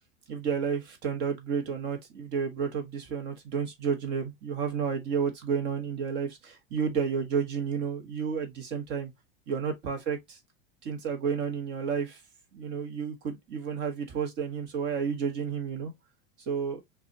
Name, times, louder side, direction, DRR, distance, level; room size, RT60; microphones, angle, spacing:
voice 1, 0.3-9.1 9.5-10.4 10.8-12.2 12.5-15.9 16.4-16.8, right 6 dB, 35° right, 1.4 m, -31 dB
6.0 x 2.5 x 2.7 m
supercardioid pair, 165°, 29 cm